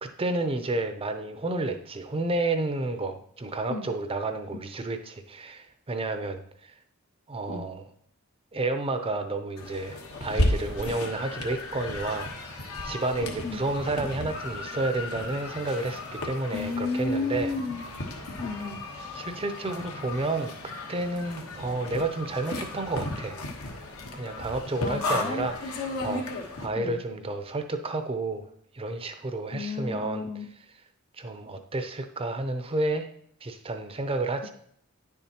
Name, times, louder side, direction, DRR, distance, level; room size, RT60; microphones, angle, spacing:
voice 1, 0.0-6.4 7.3-7.9 8.5-17.5 19.1-20.5 20.9-23.4 24.1-28.5 28.7-30.3 31.2-33.1 33.4-34.5, right 2 dB, 25° right, 7 dB, 0.5 m, -31 dB
sound 1, 9.6-26.7, left 2 dB, 75° left, 1.1 m, -34 dB
voice 2, 16.5-17.9 18.4-18.8 24.8-25.5 26.7-27.0 29.5-30.5, left 3 dB, 35° left, 8 dB, 0.5 m, -32 dB
9.7 x 7.1 x 2.9 m, 0.65 s
head